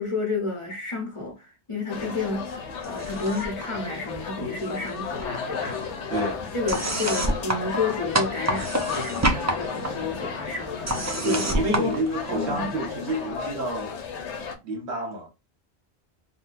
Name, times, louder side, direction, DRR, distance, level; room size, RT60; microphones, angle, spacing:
voice 1, 0.0-2.5 2.8-6.1 6.5-11.9 12.3-12.7, left 3 dB, 35° left, 0.7 m, -31 dB
sound 1, 1.9-14.5, left 6 dB, 85° left, 1.0 m, -33 dB
sound 2, 2.8-3.6 3.9-4.9 5.2-12.7, right 1 dB, 30° right, 0.3 m, -30 dB
voice 2, 6.1-6.4 11.2-13.9 14.6-15.3, right 1 dB, 70° right, 1.1 m, -29 dB
3.7 x 2.2 x 2.5 m
omnidirectional pair, 1.2 m